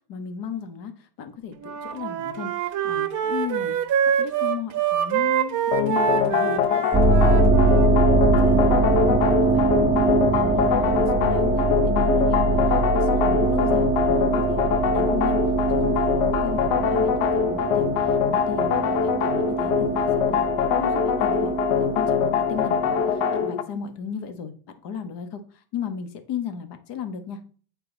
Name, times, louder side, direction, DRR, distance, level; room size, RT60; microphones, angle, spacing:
voice 1, 0.1-19.9 20.1-21.5 21.8-24.5 24.8-27.4, left 7 dB, 55° left, 8 dB, 1.5 m, -35 dB
Wind instrument woodwind instrument, 1.6-7.9, right 9 dB, 35° right, 1.0 m, -25 dB
sound 1, 5.7-23.6, left 8 dB, 70° left, 0.9 m, -23 dB
sound 2, 6.9-23.4, right 3 dB, 10° right, 0.6 m, -23 dB
9.0 x 4.5 x 4.0 m, 0.41 s
cardioid pair, 150°, 49 cm